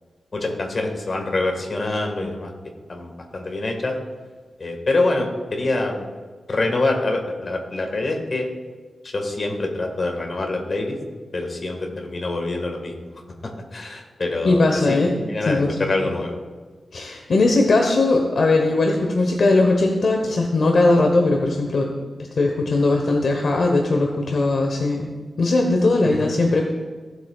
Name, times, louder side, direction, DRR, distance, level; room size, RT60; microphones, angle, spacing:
voice 1, 0.3-2.5 2.9-4.0 4.6-6.1 6.5-8.5 9.0-11.0 11.3-12.9 13.4-15.0 15.3-16.4 26.0-26.3, left 2 dB, 45° left, 3 dB, 1.6 m, -25 dB
voice 2, 14.4-15.2 15.5-15.9 16.9-21.9 22.4-25.1 25.4-26.6, left 2 dB, 65° left, 2 dB, 1.0 m, -19 dB
16.5 x 8.1 x 2.4 m, 1.5 s
wide cardioid pair, 135°, 0 cm